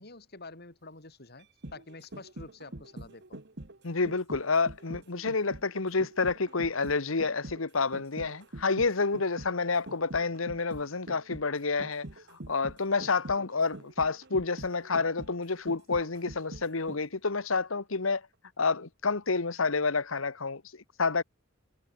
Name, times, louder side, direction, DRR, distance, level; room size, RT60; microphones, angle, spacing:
voice 1, 0.0-3.4, left 3 dB, 55° left, 4.7 m, -48 dB
sound 1, 1.4-17.3 17.6-17.7, right 1 dB, 60° right, 1.7 m, -45 dB
voice 2, 3.8-18.2 18.6-21.2, left 4 dB, 90° left, 1.4 m, -29 dB
head